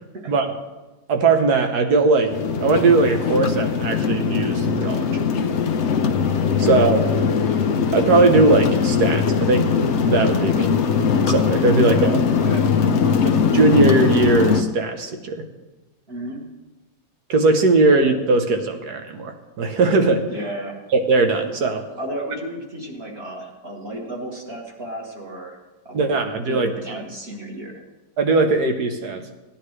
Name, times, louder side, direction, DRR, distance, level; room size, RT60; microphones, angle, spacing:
voice 1, 1.1-5.1 6.6-7.1 7.9-9.7 10.1-10.7 11.3-12.2 13.2-15.5 17.3-20.3 20.9-21.8 25.9-27.0 28.2-29.2, right 3 dB, 60° right, 5 dB, 1.5 m, -19 dB
sound 1, 2.3-14.6, left 6 dB, 60° left, 0.7 m, -20 dB
voice 2, 12.0-13.2 16.1-16.5 20.3-20.8 22.0-25.5 25.9-26.0 26.5-27.8, right 1 dB, 35° right, -1 dB, 2.2 m, -33 dB
18.0 x 10.0 x 3.3 m, 1.1 s
omnidirectional pair, 2.0 m